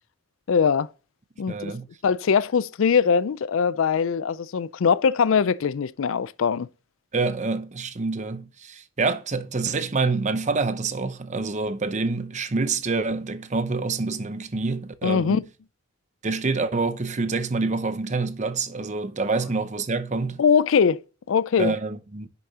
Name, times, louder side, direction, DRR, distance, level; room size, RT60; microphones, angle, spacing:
voice 1, 0.5-0.9 1.4-1.7 2.0-6.7 15.0-15.4 20.4-21.0 21.3-21.7, left 6 dB, 70° left, 0.4 m, -21 dB
voice 2, 1.5-1.9 7.1-15.4 16.2-20.4 21.6-22.3, right 3 dB, 35° right, 0.8 m, -27 dB
10.5 x 6.9 x 2.9 m
head